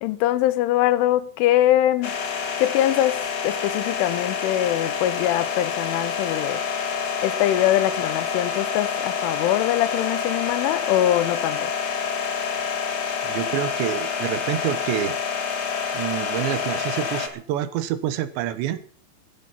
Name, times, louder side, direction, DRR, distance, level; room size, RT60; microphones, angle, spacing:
voice 1, 0.0-2.2 2.6-6.6 7.2-11.7, left 13 dB, 90° left, 3.4 m, -22 dB
sound 1, 2.0-17.3, left 6 dB, 50° left, 2.3 m, -27 dB
voice 2, 13.2-15.2 15.9-18.8, right 11 dB, 75° right, 3.2 m, -27 dB
16.0 x 12.0 x 5.8 m
omnidirectional pair, 5.4 m